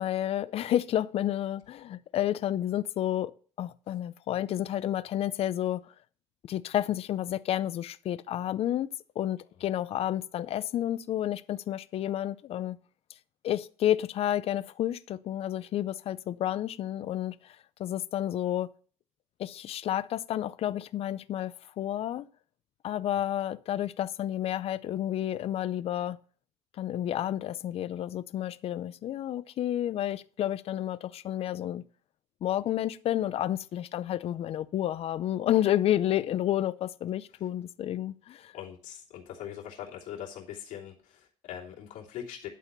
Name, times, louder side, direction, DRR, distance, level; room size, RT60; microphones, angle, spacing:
voice 1, 0.0-3.3 3.6-5.9 6.5-12.8 13.4-18.7 19.4-22.3 22.8-26.2 26.8-31.8 32.4-38.5, left 12 dB, 55° left, 0.5 m, -30 dB
voice 2, 38.5-42.5, left 10 dB, 85° left, 2.9 m, -42 dB
11.0 x 4.2 x 6.8 m
cardioid pair, 130°, 12 cm